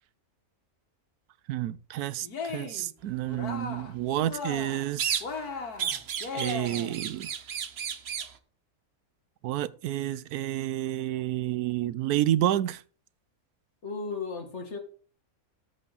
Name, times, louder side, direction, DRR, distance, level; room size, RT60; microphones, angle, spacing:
voice 1, 1.5-5.2 6.3-7.3 9.4-12.8, right 13 dB, 90° right, 1.1 m, -29 dB
Cheering, 2.2-2.9 3.2-3.9 4.2-4.9 5.2-7.0, left 4 dB, 85° left, 2.0 m, -37 dB
sound 1, 5.0-5.5 5.8-8.4, right 8 dB, 50° right, 0.9 m, -33 dB
voice 2, 13.8-14.8, left 4 dB, 50° left, 2.0 m, -35 dB
14.0 x 5.5 x 4.0 m
omnidirectional pair, 1.6 m